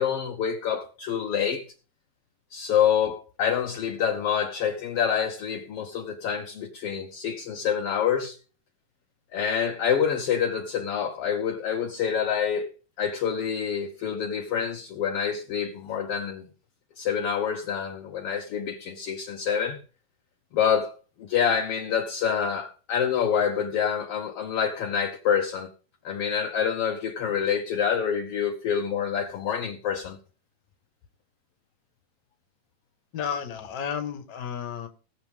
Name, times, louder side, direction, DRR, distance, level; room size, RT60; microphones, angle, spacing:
voice 1, 0.0-1.7 2.5-8.4 9.3-12.7 13.0-16.5 17.0-19.8 20.5-20.9 21.2-25.7 26.0-30.2, left 7 dB, 70° left, 1.4 m, -27 dB
voice 2, 33.1-34.9, left 7 dB, 45° left, 1.5 m, -32 dB
19.0 x 7.2 x 3.6 m
omnidirectional pair, 3.7 m